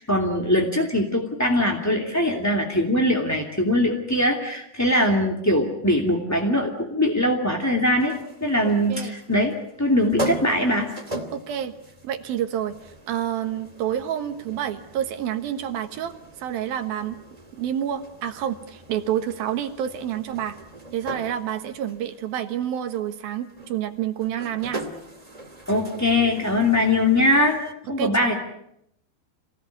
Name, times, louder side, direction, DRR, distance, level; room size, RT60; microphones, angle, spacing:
voice 1, 0.0-8.1 8.4-10.9 25.7-27.6 27.9-28.4, left 1 dB, 5° left, 1 dB, 1.2 m, -22 dB
sound 1, 8.0-27.7, right 1 dB, 20° right, 1.1 m, -39 dB
voice 2, 11.3-11.7 12.0-12.8 13.1-16.1 16.4-17.2 17.6-20.6 20.9-24.8 28.0-28.4, right 10 dB, 65° right, 8 dB, 2.8 m, -28 dB
28.0 x 18.5 x 9.4 m, 0.78 s
omnidirectional pair, 5.2 m